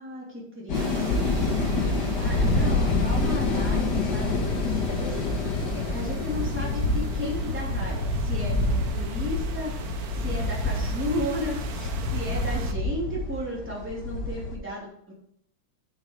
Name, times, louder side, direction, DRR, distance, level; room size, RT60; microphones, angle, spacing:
voice 1, 0.0-1.7 2.2-5.3 5.7-15.1, left 1 dB, 5° right, -5 dB, 3.1 m, -34 dB
sound 1, 0.7-14.6, left 2 dB, 60° left, 1.8 m, -27 dB
sound 2, 0.7-12.7, right 6 dB, 55° right, 1.2 m, -42 dB
9.7 x 5.6 x 4.7 m, 0.72 s
omnidirectional pair, 2.2 m